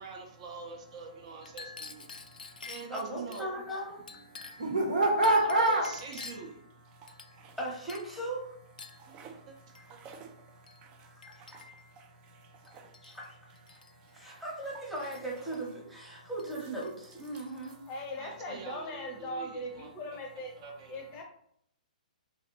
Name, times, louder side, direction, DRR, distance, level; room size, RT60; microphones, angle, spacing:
voice 1, 0.0-3.6 4.4-4.6 5.4-6.7 9.5-9.6 9.9-10.0 18.2-20.2 20.6-21.0, right 4 dB, 45° right, 2 dB, 0.7 m, -45 dB
voice 2, 1.3-2.9 4.2-6.0 6.8-7.6 8.8-10.6 11.6-13.2 13.7-14.4 16.0-16.3 17.3-17.9 20.6-21.2, right 1 dB, 75° right, 0 dB, 1.0 m, -33 dB
Chink clink, 1.4-3.5 4.1-4.7 5.2-6.6 7.1-7.6 7.9-8.2 8.8-9.1 9.7-9.9 10.7-10.8 11.2-11.9 12.6-13.3 13.6-13.9 15.0-15.6 16.4-16.5 16.8-17.7, left 4 dB, 80° left, 0.3 m, -48 dB
voice 3, 2.9-4.5 7.6-8.6 13.0-13.6 14.1-17.8, right 1 dB, ahead, -5 dB, 0.9 m, -38 dB
sound 1, 6.4-8.4 8.7-15.9 16.3-18.4, right 5 dB, 25° right, 0.3 m, -56 dB
voice 4, 17.9-20.5 20.9-21.2, left 1 dB, 30° left, 3 dB, 0.6 m, -39 dB
3.0 x 2.5 x 2.9 m, 0.69 s
figure-of-eight pair, 125°, 4 cm